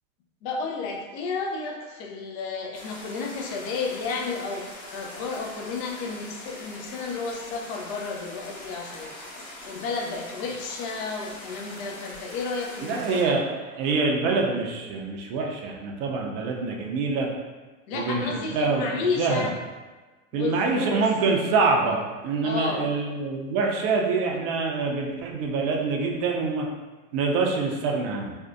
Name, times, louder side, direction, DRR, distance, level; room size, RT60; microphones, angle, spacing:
voice 1, 0.4-9.2 9.6-13.4 17.9-19.6 20.3-21.1 22.4-22.9, left 4 dB, 40° left, 1 dB, 0.4 m, -32 dB
sound 1, 2.7-13.2, left 1 dB, 80° left, 0.8 m, -42 dB
voice 2, 12.8-17.3 17.9-18.8 19.2-19.5 20.3-26.7 27.1-28.4, right 4 dB, 45° right, 1 dB, 0.5 m, -25 dB
2.5 x 2.1 x 2.4 m, 1.2 s
hypercardioid pair, 105°, 41 cm